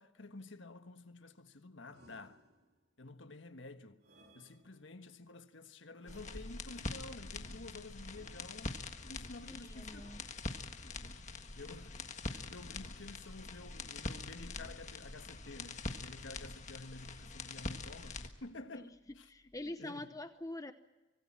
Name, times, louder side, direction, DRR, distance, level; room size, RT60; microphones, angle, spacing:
voice 1, 0.0-2.4 3.0-4.0 4.3-8.8 9.1-10.1 11.5-19.3 19.6-20.1, left 2 dB, 70° left, 1.5 m, -51 dB
sound 1, 1.9-2.9 4.0-5.1 6.0-6.9 8.1-9.0 9.9-10.9, right 1 dB, 55° right, 3.7 m, -65 dB
sound 2, 6.1-18.3, left 3 dB, 35° left, 1.6 m, -44 dB
voice 2, 9.5-10.2 19.3-20.7, left 1 dB, 15° left, 0.8 m, -44 dB
25.0 x 20.5 x 7.4 m
head